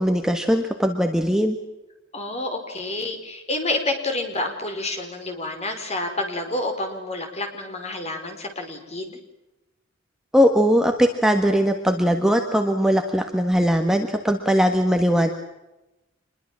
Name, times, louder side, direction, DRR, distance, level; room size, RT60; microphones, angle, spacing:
voice 1, 0.0-1.6 10.3-15.3, equal, 5° right, 4 dB, 1.6 m, -20 dB
voice 2, 2.1-9.2, left 2 dB, 30° left, 4 dB, 4.9 m, -29 dB
26.5 x 22.0 x 7.5 m, 0.98 s
head